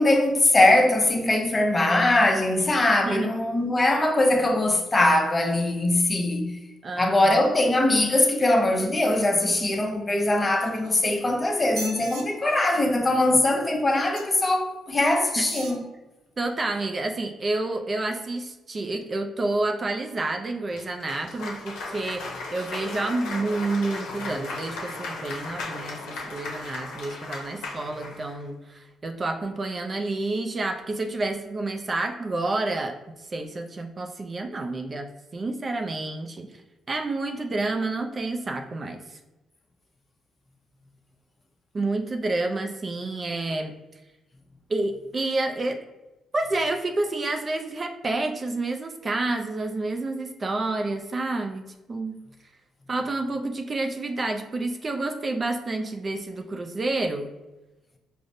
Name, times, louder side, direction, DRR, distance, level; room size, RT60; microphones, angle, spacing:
voice 1, 0.0-6.6 7.0-15.8, left 1 dB, 25° left, 0.6 m, -21 dB
voice 2, 6.8-7.1 15.4-15.5 16.4-33.0 33.3-36.5 36.9-39.2 41.7-43.7 44.7-45.8 46.3-51.6 51.9-52.2 52.9-57.3, right 2 dB, 35° right, 0.3 m, -29 dB
sound 1, 10.5-11.2 11.6-12.2 14.1-14.5 15.3-15.8 16.5-16.6, right 3 dB, 85° right, 0.5 m, -39 dB
Cheering / Applause, 20.7-28.4, left 3 dB, 85° left, 0.6 m, -36 dB
4.8 x 2.0 x 2.6 m
cardioid pair, 90°, 0 cm